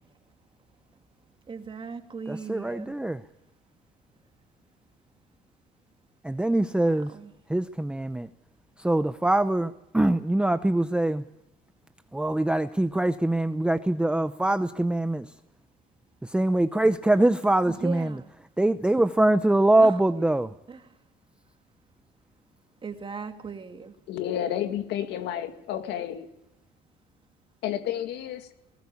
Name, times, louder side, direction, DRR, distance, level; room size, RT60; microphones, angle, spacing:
voice 1, 1.5-3.0 6.8-7.3 17.7-18.3 19.8-19.9 20.7-20.8 22.8-23.9, right 5 dB, 30° right, 2.6 m, -38 dB
voice 2, 2.3-3.2 6.2-7.1 7.5-8.3 8.8-11.2 12.1-15.3 16.2-18.2 18.6-20.5, right 1 dB, 5° right, 0.7 m, -23 dB
voice 3, 24.1-26.3 27.6-28.5, left 10 dB, 85° left, 2.1 m, -31 dB
20.5 x 18.5 x 8.5 m
cardioid pair, 110°, 17 cm